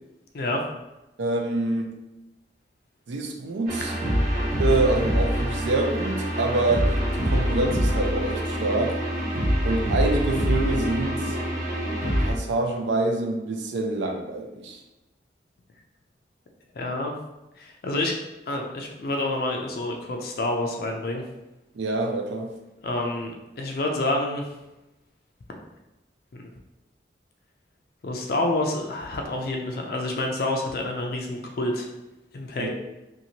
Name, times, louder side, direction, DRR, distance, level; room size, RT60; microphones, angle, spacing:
voice 1, 1.2-1.9 3.1-3.9 4.6-9.0 9.6-11.4 12.2-14.8 21.7-22.5 32.6-32.7, right 2 dB, 85° right, 3 dB, 0.4 m, -26 dB
sound 1, 3.7-12.3, equal, 50° right, 0.9 m, -25 dB
voice 2, 16.7-17.2 17.6-18.2 18.5-21.2 22.8-24.5 26.3-26.5 28.0-31.9 32.3-32.7, left 2 dB, 55° left, 1 dB, 0.4 m, -28 dB
2.7 x 2.5 x 2.8 m, 0.97 s
head